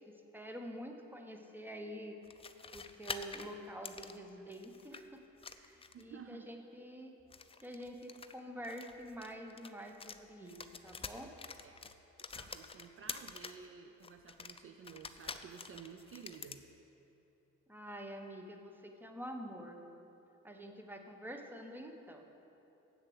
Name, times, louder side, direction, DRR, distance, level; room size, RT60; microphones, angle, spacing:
voice 1, 0.1-2.2 2.7-5.2 5.5-7.2 7.6-10.6 10.8-11.3 17.7-19.8 20.4-22.2, equal, 5° right, 4 dB, 1.0 m, -47 dB
sound 1, 2.2-5.0 5.4-6.1 7.2-10.2 10.5-13.7 14.0-16.6, left 5 dB, 20° left, 0.4 m, -47 dB
voice 2, 5.9-6.5 11.6-11.9 12.3-16.7, right 6 dB, 45° right, 6 dB, 0.5 m, -53 dB
8.4 x 6.5 x 7.7 m, 2.9 s
cardioid pair, 90°, 30 cm